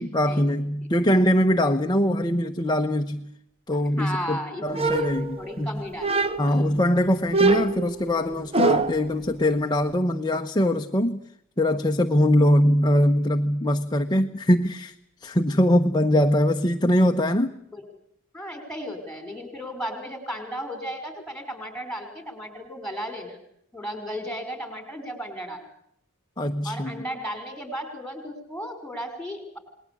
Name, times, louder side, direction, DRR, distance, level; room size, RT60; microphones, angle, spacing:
voice 1, 0.0-3.3 3.7-5.8 6.4-11.2 11.6-14.9 15.2-17.6 26.4-27.0, left 1 dB, 20° left, 5 dB, 0.9 m, -22 dB
voice 2, 4.0-5.1 5.4-6.6 15.5-15.8 17.7-17.8 18.3-23.4 23.7-25.6 26.6-29.6, equal, 5° left, 8 dB, 5.6 m, -35 dB
sound 1, 4.7-5.6 6.0-6.6 7.3-9.1, right 3 dB, 25° right, 1.1 m, -24 dB
28.5 x 20.5 x 8.5 m, 0.73 s
head